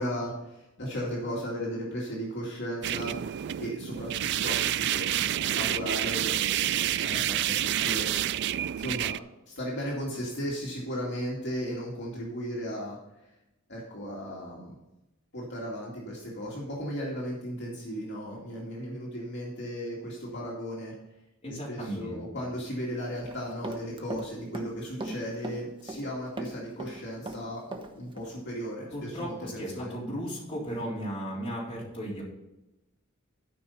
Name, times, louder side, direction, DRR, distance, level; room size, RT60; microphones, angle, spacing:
voice 1, 0.0-3.1 3.6-8.1 8.8-9.2 9.5-13.0 13.7-14.8 15.3-20.9 21.5-30.0, equal, 60° left, -4 dB, 2.3 m, -36 dB
sound 1, 2.8-9.2, right 12 dB, 55° right, 0.3 m, -28 dB
voice 2, 21.4-22.2 28.9-32.2, equal, 30° left, -5 dB, 3.6 m, -35 dB
Run, 23.2-24.3 24.5-26.1 26.4-27.9 28.2-28.3, right 2 dB, 25° right, 1.0 m, -37 dB
12.5 x 5.4 x 5.6 m, 0.94 s
head